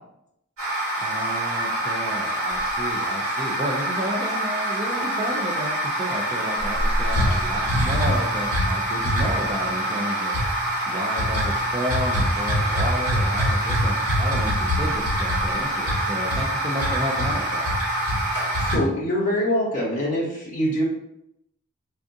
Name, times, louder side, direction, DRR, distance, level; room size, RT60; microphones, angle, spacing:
sound 1, 0.6-18.8, equal, 70° right, 1.4 m, -24 dB
voice 1, 1.0-10.4 10.9-17.7, equal, 25° right, 0 dB, 0.4 m, -32 dB
voice 2, 18.6-20.8, equal, 35° left, -6 dB, 0.9 m, -24 dB
4.4 x 2.5 x 2.6 m, 0.77 s
head